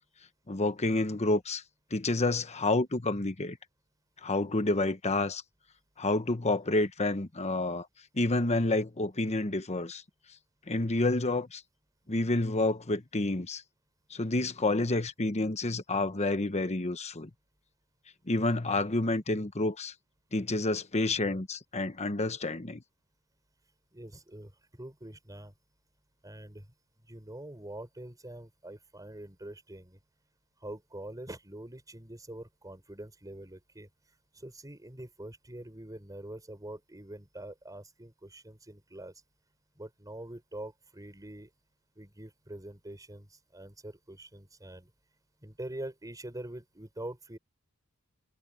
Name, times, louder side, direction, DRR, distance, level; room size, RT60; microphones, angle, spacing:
voice 1, 0.5-1.6 1.9-3.6 4.2-5.4 6.0-7.9 8.1-10.0 10.7-11.6 12.1-13.6 14.1-17.3 18.3-19.9 20.3-22.8, left 2 dB, 30° left, 1.2 m, -29 dB
voice 2, 23.9-25.5 26.2-26.7 27.0-30.0 30.6-33.9 34.3-39.2 39.7-41.5 41.9-44.9 45.4-47.4, right 1 dB, 15° right, 4.9 m, -44 dB
head